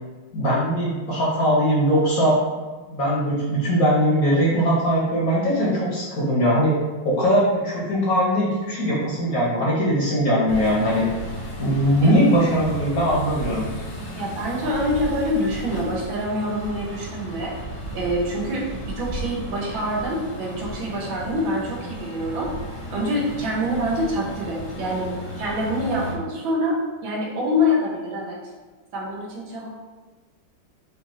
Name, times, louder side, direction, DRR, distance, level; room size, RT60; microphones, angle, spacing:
voice 1, 0.3-2.4 2.9-6.8 7.0-11.1 11.6-13.7, equal, 55° left, -6 dB, 1.2 m, -20 dB
sound 1, 10.5-26.1, equal, 70° left, 0.4 m, -34 dB
voice 2, 14.1-17.5 17.9-22.5 22.9-25.1 25.4-28.4 28.9-29.7, left 1 dB, 75° right, -3 dB, 1.6 m, -26 dB
5.0 x 2.7 x 3.0 m, 1.3 s
omnidirectional pair, 2.2 m